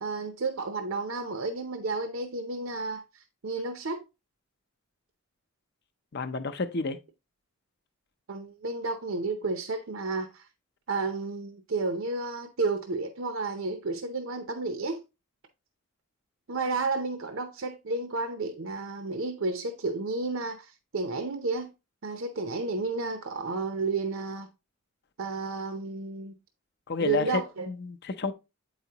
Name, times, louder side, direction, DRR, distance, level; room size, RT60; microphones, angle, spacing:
voice 1, 0.0-4.0 8.3-10.5 10.9-15.0 16.5-21.7 22.0-24.5 25.2-26.3 27.0-27.7, right 3 dB, 65° right, 0.7 m, -32 dB
voice 2, 6.1-7.0 26.9-27.4 27.7-28.3, left 4 dB, 45° left, 0.6 m, -30 dB
8.1 x 4.9 x 2.8 m
head